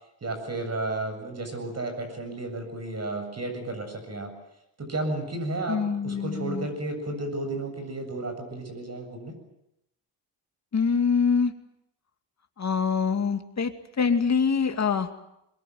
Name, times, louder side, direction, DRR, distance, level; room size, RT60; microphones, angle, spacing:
voice 1, 0.2-4.3 4.8-9.4, right 2 dB, 35° right, 6 dB, 7.8 m, -33 dB
voice 2, 5.7-6.7 10.7-11.5 12.6-15.1, left 5 dB, 35° left, 6 dB, 2.5 m, -25 dB
23.0 x 22.0 x 9.3 m, 0.82 s
cardioid pair, 105°, 44 cm